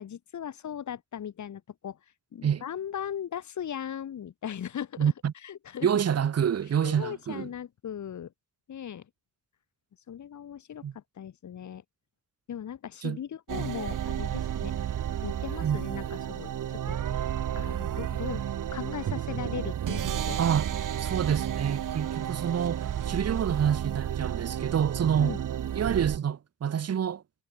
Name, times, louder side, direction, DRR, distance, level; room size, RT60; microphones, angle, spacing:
voice 1, 0.0-2.0 2.3-5.1 5.4-5.9 6.8-8.3 8.7-9.0 10.1-11.8 12.5-14.7 15.2-16.5 16.9-17.0 17.6-18.4 18.7-20.4 25.2-25.4, left 9 dB, 55° left, 2.2 m, -38 dB
voice 2, 5.0-5.3 5.8-7.5 10.8-10.9 13.0-13.2 13.6-13.7 15.6-15.8 20.4-20.7 21.0-25.3 25.7-27.2, right 8 dB, 45° right, 1.5 m, -27 dB
sound 1, 13.5-26.2, right 10 dB, 65° right, 2.6 m, -32 dB
wide cardioid pair, 145°, 34 cm